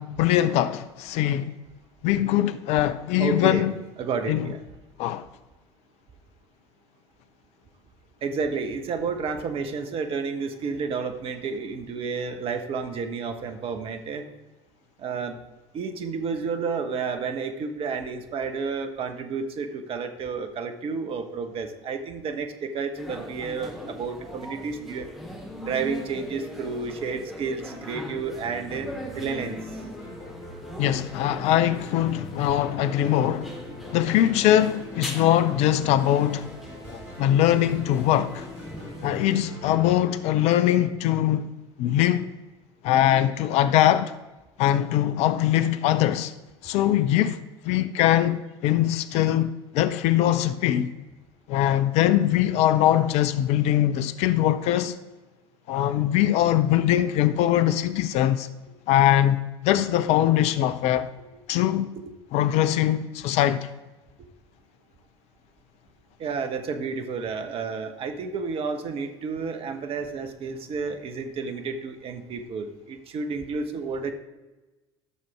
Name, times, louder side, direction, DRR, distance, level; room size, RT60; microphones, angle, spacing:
voice 1, 0.0-1.5 2.0-3.7 4.3-4.5 5.0-5.3 30.8-33.5 33.9-36.5 36.9-38.5 39.0-41.5 41.8-42.3 42.8-44.1 44.6-46.3 46.6-50.9 51.5-55.0 55.7-58.5 58.9-61.1 61.5-61.9 62.3-63.7, left 12 dB, 50° left, 0.5 m, -22 dB
voice 2, 3.2-3.7 4.0-4.6 8.2-14.2 15.0-15.4 15.7-25.1 25.6-28.9 29.2-29.6 66.2-74.1, right 5 dB, 40° right, 1.1 m, -31 dB
sound 1, 23.0-39.4, equal, ahead, 2.3 m, -40 dB
sound 2, 27.6-41.2, left 1 dB, 80° right, 3.3 m, -43 dB
12.5 x 6.7 x 3.5 m
figure-of-eight pair, 65°, 15 cm